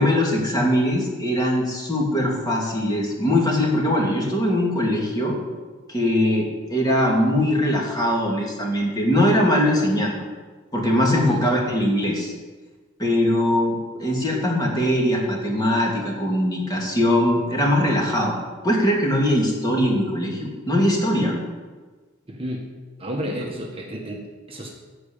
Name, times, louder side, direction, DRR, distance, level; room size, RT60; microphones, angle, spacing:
voice 1, 0.0-5.4 5.9-10.1 10.7-12.3 13.0-18.3 18.6-21.3, left 1 dB, 20° left, -2 dB, 2.6 m, -21 dB
voice 2, 11.1-11.5 22.3-22.7 23.0-24.7, equal, 30° right, 0 dB, 1.4 m, -31 dB
14.5 x 5.1 x 8.7 m, 1.4 s
head